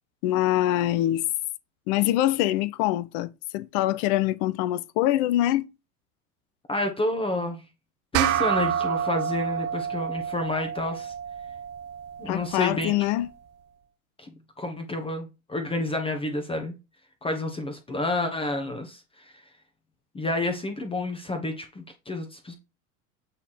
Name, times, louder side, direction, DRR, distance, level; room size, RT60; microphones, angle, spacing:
voice 1, 0.2-1.3 1.9-5.7 12.3-13.3, left 14 dB, 30° left, 0.4 m, -24 dB
voice 2, 6.7-7.6 8.1-11.1 12.2-12.9 14.2-14.3 14.6-16.7 17.2-19.3 20.1-22.5, left 2 dB, 10° left, 1.1 m, -29 dB
sound 1, 8.1-12.9, right 9 dB, 30° right, 0.7 m, -29 dB
8.2 x 3.6 x 4.3 m
figure-of-eight pair, 85°, 44 cm